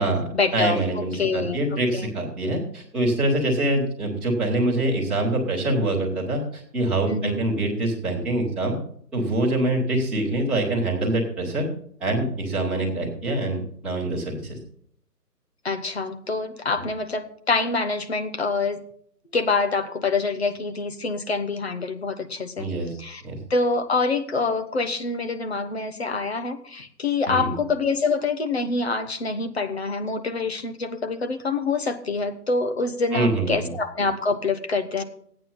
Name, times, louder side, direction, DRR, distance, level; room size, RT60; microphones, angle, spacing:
voice 1, 0.0-1.6 1.9-2.1 7.1-7.4 15.6-18.8 19.3-22.7 23.0-23.2 23.5-35.0, left 4 dB, 40° left, 9 dB, 1.0 m, -26 dB
voice 2, 0.5-8.8 9.1-11.7 12.0-14.6 22.6-22.9 23.2-23.4 27.3-27.5 33.1-33.7, right 1 dB, ahead, -10 dB, 1.6 m, -25 dB
14.0 x 9.0 x 4.1 m, 0.63 s
figure-of-eight pair, 155°, 49 cm